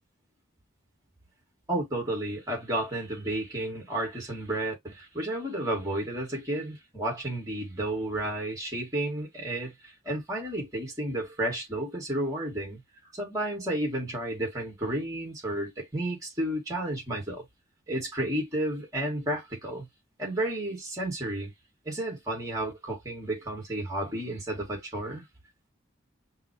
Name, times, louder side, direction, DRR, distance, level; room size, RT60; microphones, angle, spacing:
voice 1, 1.7-12.8 13.1-17.4 17.9-19.9 20.2-21.5 21.9-25.2, right 1 dB, 15° right, 2.3 m, -32 dB
5.8 x 2.6 x 3.2 m
head